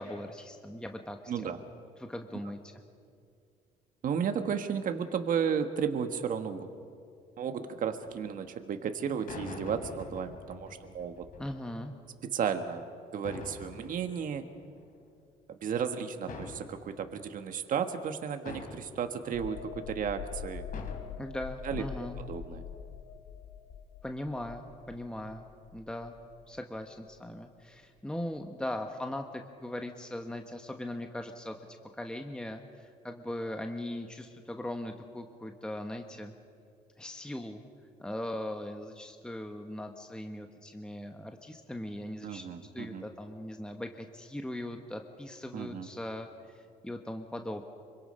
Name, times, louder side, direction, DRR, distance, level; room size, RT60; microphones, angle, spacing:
voice 1, 0.0-1.5 2.0-2.7 11.4-11.9 21.2-22.2 24.0-26.2 26.5-31.6 31.9-36.3 37.0-37.6 38.0-42.5 42.7-47.6, left 1 dB, 5° left, 4 dB, 1.2 m, -39 dB
voice 2, 4.0-6.7 7.4-11.3 12.2-12.9 13.1-14.4 15.5-20.6 21.6-21.8 22.3-22.6 42.2-43.0 45.5-45.9, right 7 dB, 55° right, 7 dB, 1.4 m, -33 dB
sound 1, 8.0-8.3 9.3-11.9 13.2-15.0 16.3-17.2 18.5-19.2 20.7-21.0, left 4 dB, 55° left, 3.5 m, -45 dB
sound 2, 19.3-26.8 27.1-27.3, left 7 dB, 80° left, 1.4 m, -44 dB
25.5 x 24.5 x 5.5 m, 2.4 s
cardioid pair, 110°, 17 cm